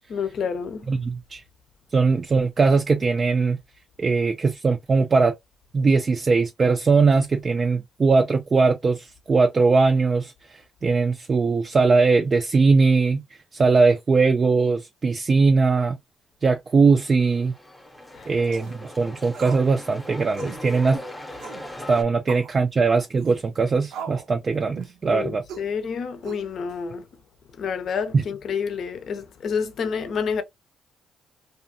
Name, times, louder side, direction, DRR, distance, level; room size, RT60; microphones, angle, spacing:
voice 1, 0.1-0.9 18.1-18.3 25.1-27.1 27.6-30.4, left 6 dB, 60° left, 0.6 m, -29 dB
voice 2, 0.9-1.4 1.9-3.6 4.0-5.4 5.7-13.2 13.5-16.0 16.4-17.5 18.3-21.0 21.9-25.4 28.1-28.2, right 4 dB, 35° right, 0.3 m, -20 dB
sound 1, 17.1-22.0, left 1 dB, 10° left, 0.7 m, -39 dB
sound 2, 18.4-18.8 19.3-19.7 19.9-20.0 20.4-20.6 21.4-21.7 22.3-22.5 23.2-23.4 23.9-24.3 24.8-25.0 25.5-25.7 26.2-26.7, right 7 dB, 85° right, 0.6 m, -38 dB
2.6 x 2.4 x 2.6 m
cardioid pair, 90°, 0 cm